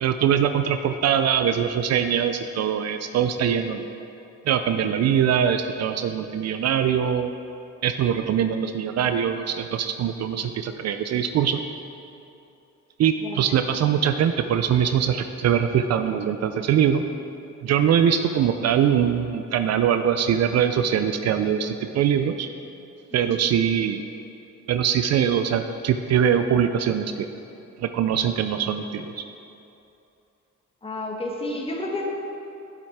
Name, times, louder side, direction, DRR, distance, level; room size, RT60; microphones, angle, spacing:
voice 1, 0.0-3.9 4.5-7.3 7.8-11.6 13.0-17.0 17.6-22.5 23.1-24.0 24.7-27.3 27.8-29.2, right 8 dB, 60° right, 8 dB, 0.4 m, -22 dB
voice 2, 23.1-23.4 30.8-32.1, left 2 dB, 20° left, -1 dB, 1.2 m, -31 dB
7.0 x 6.1 x 4.7 m, 2.8 s
cardioid pair, 90°, 30 cm